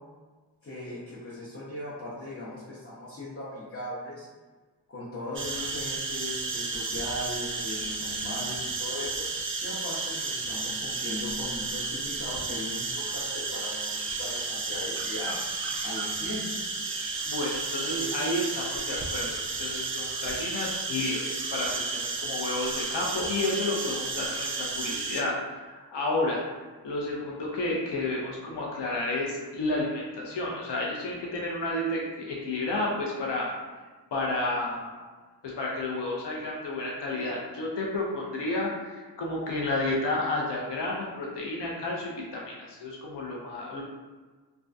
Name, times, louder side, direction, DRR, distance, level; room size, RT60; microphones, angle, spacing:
voice 1, 0.6-4.3 4.9-9.3 9.6-15.4 15.8-16.7 17.9-18.2, left 1 dB, 35° left, -8 dB, 0.7 m, -38 dB
sound 1, 5.3-25.2, right 3 dB, 30° right, 0.4 m, -32 dB
voice 2, 17.3-25.4 25.7-26.4 26.8-33.5 34.1-34.9 35.4-43.8, left 2 dB, 75° left, -3 dB, 0.6 m, -31 dB
2.4 x 2.1 x 2.5 m, 1.4 s
cardioid pair, 50°, 42 cm